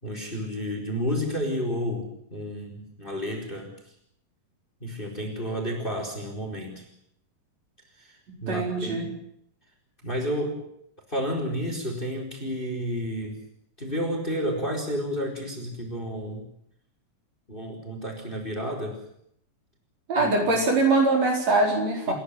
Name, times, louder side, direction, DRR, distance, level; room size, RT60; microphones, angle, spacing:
voice 1, 0.0-3.7 4.8-6.9 8.0-9.1 10.0-10.6 11.1-13.4 13.8-16.5 17.5-19.0 20.1-20.3 22.1-22.2, equal, 15° left, 3 dB, 4.4 m, -31 dB
voice 2, 8.5-9.1 20.1-22.1, right 2 dB, 50° right, 0 dB, 5.7 m, -22 dB
29.5 x 11.0 x 10.0 m, 0.73 s
omnidirectional pair, 3.9 m